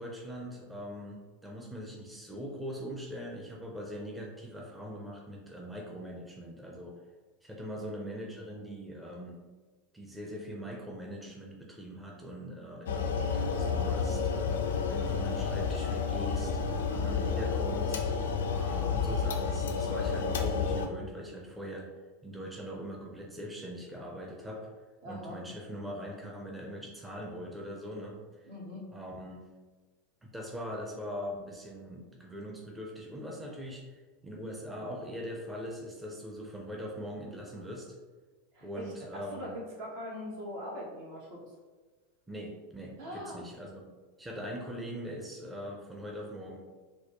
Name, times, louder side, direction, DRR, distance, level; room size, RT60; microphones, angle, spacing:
voice 1, 0.0-6.9 7.4-9.4 9.9-18.1 18.5-21.9 22.2-24.7 25.0-28.5 28.9-29.4 30.2-38.0 38.6-39.5 42.3-43.9 44.2-46.6, equal, 10° right, -1 dB, 0.6 m, -42 dB
sound 1, 12.9-20.9, left 5 dB, 80° left, 0.4 m, -30 dB
voice 2, 25.0-25.4 28.5-28.9 38.5-41.4 43.0-43.4, equal, 65° right, -4 dB, 1.3 m, -41 dB
4.0 x 2.2 x 3.0 m, 1.3 s
hypercardioid pair, 95°, 0 cm